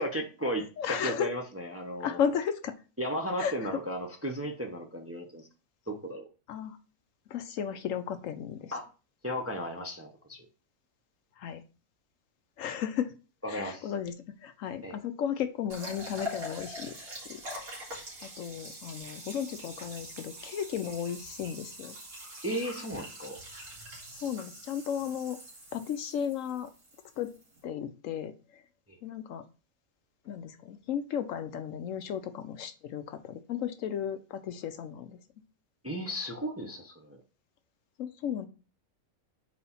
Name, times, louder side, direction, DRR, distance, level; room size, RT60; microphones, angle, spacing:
voice 1, 0.0-2.2 3.0-5.5 5.9-6.3 8.7-8.9 9.2-10.5 13.4-13.9 14.8-15.0 18.7-18.8 22.4-23.4 35.8-37.2, equal, 15° right, 2 dB, 0.6 m, -35 dB
voice 2, 0.8-1.3 2.0-2.7 3.4-3.7 6.5-6.8 7.3-8.7 11.4-11.6 12.6-13.1 13.5-14.1 14.4-17.0 17.3-17.4 18.2-22.0 24.2-25.4 25.7-26.7 27.2-27.3 27.6-28.6 29.0-29.5 30.3-35.2 38.0-38.5, left 8 dB, 70° left, 10 dB, 0.9 m, -34 dB
sound 1, 15.7-27.6, equal, 80° right, 2.7 m, -44 dB
4.3 x 4.2 x 5.5 m, 0.34 s
omnidirectional pair, 1.5 m